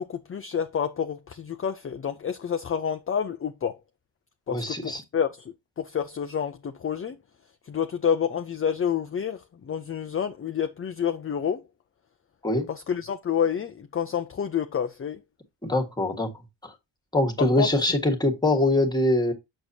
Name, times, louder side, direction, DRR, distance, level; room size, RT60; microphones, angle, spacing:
voice 1, 0.0-3.8 4.5-7.2 7.7-11.6 12.7-15.2 17.4-17.7, left 8 dB, 30° left, 0.5 m, -29 dB
voice 2, 4.5-5.0 12.4-12.7 15.6-16.3 16.6-16.7 17.1-19.3, left 1 dB, 10° left, 1.5 m, -23 dB
8.1 x 6.4 x 2.7 m
wide cardioid pair, 160°, 48 cm